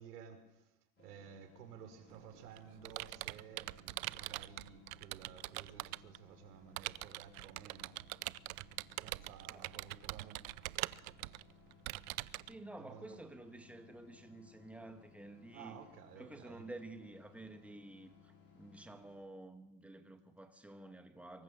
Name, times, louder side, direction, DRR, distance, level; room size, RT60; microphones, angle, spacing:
voice 1, 0.0-8.0 9.0-10.5 12.8-13.2 15.5-16.7, right 8 dB, 90° right, 5.9 m, -55 dB
sound 1, 1.0-19.2, left 6 dB, 25° left, 6.5 m, -63 dB
Computer keyboard, 2.1-6.2 6.8-12.5, right 20 dB, 65° right, 0.8 m, -43 dB
voice 2, 12.4-15.8 16.2-21.4, right 2 dB, 5° right, 1.9 m, -51 dB
25.0 x 23.5 x 7.4 m
supercardioid pair, 150°, 45 cm